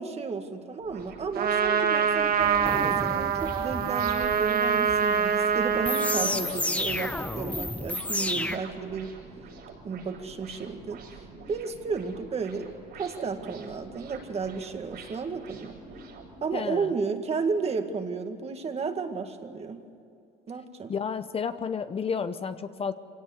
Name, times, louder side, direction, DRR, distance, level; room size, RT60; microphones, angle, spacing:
voice 1, 0.0-9.1 9.8-11.2 11.5-15.8 16.4-19.9 20.5-20.9, right 5 dB, 40° right, 6 dB, 2.0 m, -33 dB
sound 1, 0.8-16.3, right 4 dB, 80° right, 6.7 m, -47 dB
Trumpet, 1.3-6.4, right 7 dB, 65° right, 2.1 m, -25 dB
sound 2, 2.4-8.6, left 1 dB, 10° left, 0.9 m, -32 dB
voice 2, 6.2-6.7 16.5-16.9 20.9-22.9, left 6 dB, 35° left, 11 dB, 0.8 m, -32 dB
24.5 x 17.5 x 8.3 m, 2.5 s
cardioid pair, 110°, 17 cm